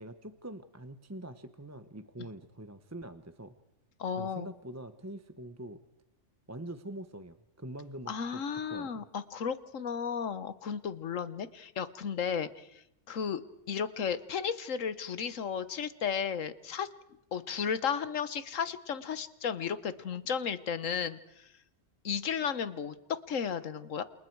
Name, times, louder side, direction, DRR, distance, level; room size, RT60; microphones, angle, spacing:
voice 1, 0.0-3.5 4.2-5.8 6.5-9.0, right 1 dB, 15° right, 10 dB, 0.8 m, -44 dB
voice 2, 4.0-4.5 8.1-12.7 13.1-13.4 13.7-16.9 17.3-21.5 22.0-24.0, left 7 dB, 85° left, 14 dB, 1.5 m, -34 dB
29.0 x 28.0 x 4.7 m, 0.85 s
omnidirectional pair, 1.3 m